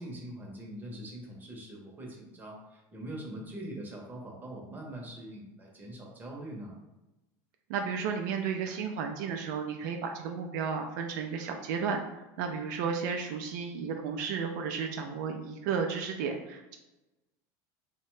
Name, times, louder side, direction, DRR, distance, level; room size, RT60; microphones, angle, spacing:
voice 1, 0.0-6.8, right 1 dB, 20° right, -1 dB, 0.7 m, -43 dB
voice 2, 7.7-16.8, right 6 dB, 75° right, 3 dB, 0.4 m, -33 dB
2.7 x 2.2 x 3.1 m, 0.99 s
supercardioid pair, 125°, 10 cm